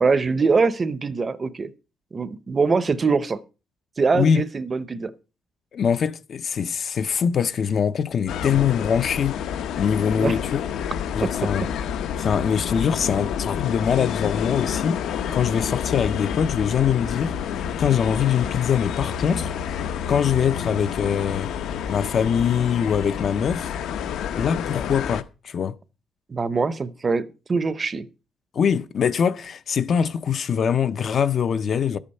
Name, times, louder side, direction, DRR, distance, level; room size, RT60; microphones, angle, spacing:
voice 1, 0.0-1.7 2.1-3.4 4.0-5.1 10.2-10.4 11.2-11.3 26.3-27.2 27.5-28.0, right 4 dB, 20° right, 0.6 m, -22 dB
voice 2, 5.7-9.4 9.8-10.6 11.1-11.7 12.2-15.0 15.3-19.5 20.1-21.5 21.9-23.7 24.3-25.8 28.5-32.0, left 7 dB, 35° left, 0.5 m, -23 dB
sound 1, 8.3-25.2, left 8 dB, 65° left, 0.8 m, -29 dB
12.0 x 8.5 x 5.4 m
cardioid pair, 180°, 0 cm